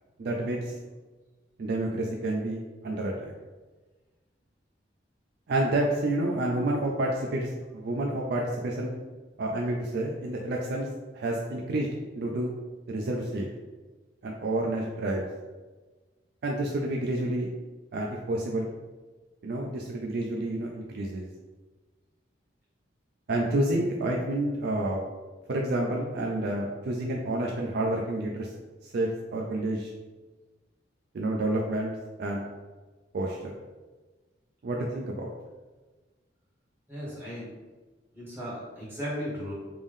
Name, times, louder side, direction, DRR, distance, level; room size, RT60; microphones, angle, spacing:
voice 1, 0.2-0.7 1.6-3.3 5.5-8.9 9.4-10.9 11.1-11.9 12.1-12.5 12.9-13.5 14.2-15.3 16.4-17.5 17.9-18.7 19.4-21.3 23.3-25.0 25.5-28.5 28.9-29.9 31.1-31.9 32.2-32.5 33.1-33.5 34.6-35.3, right 1 dB, 60° right, -1 dB, 0.4 m, -29 dB
voice 2, 36.9-37.5 38.1-39.5, equal, 10° right, -8 dB, 1.5 m, -36 dB
3.4 x 2.6 x 3.5 m, 1.3 s
head